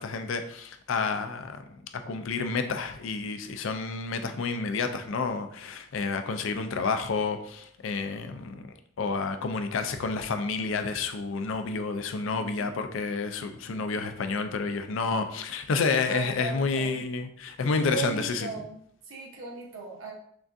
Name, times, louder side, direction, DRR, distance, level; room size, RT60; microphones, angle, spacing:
voice 1, 0.0-18.5, left 4 dB, 70° left, 8 dB, 0.4 m, -30 dB
voice 2, 12.3-12.8 16.1-17.0 17.9-18.8 19.1-20.1, right 4 dB, 80° right, -2 dB, 1.1 m, -37 dB
5.9 x 2.4 x 2.6 m, 0.67 s
head